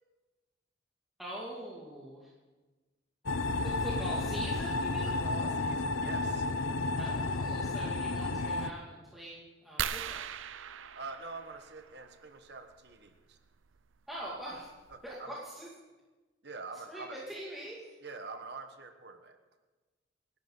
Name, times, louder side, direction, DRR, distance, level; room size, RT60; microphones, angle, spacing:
voice 1, 1.2-2.3 3.6-5.2 6.9-10.3 14.1-14.7 15.0-15.7 16.9-18.0, right 1 dB, ahead, -7 dB, 2.3 m, -43 dB
sound 1, 3.3-8.7, left 2 dB, 90° left, 0.8 m, -32 dB
voice 2, 5.0-6.5 10.9-13.4 14.9-15.4 16.4-17.2 18.0-19.4, right 3 dB, 55° right, 6 dB, 1.3 m, -45 dB
sound 2, 9.8-12.2 13.8-13.9 14.5-14.6 14.9-15.1, right 9 dB, 80° right, 0.5 m, -39 dB
30.0 x 11.5 x 3.9 m, 1.2 s
head